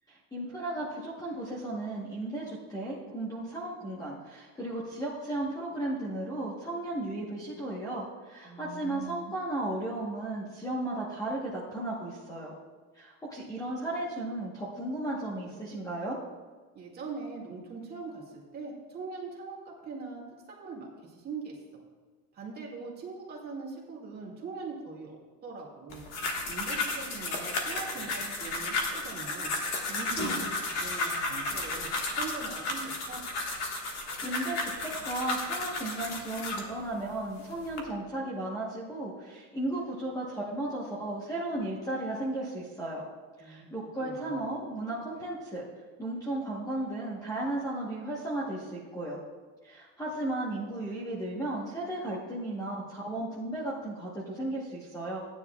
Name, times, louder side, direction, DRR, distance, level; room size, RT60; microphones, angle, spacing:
voice 1, 0.1-12.5 12.9-16.2 34.2-43.0 43.4-45.6 46.0-49.2 49.6-55.2, right 1 dB, 10° left, -5 dB, 1.1 m, -35 dB
voice 2, 8.4-9.3 16.7-20.2 20.5-21.8 22.3-26.0 26.5-29.5 29.9-31.9 32.2-33.2 43.4-43.7 44.0-44.4, right 4 dB, 25° right, -3 dB, 2.1 m, -41 dB
sound 1, 25.9-36.7 37.3-37.8, left 2 dB, 45° left, 1.6 m, -33 dB
15.0 x 9.8 x 2.3 m, 1.4 s
cardioid pair, 175°, 36 cm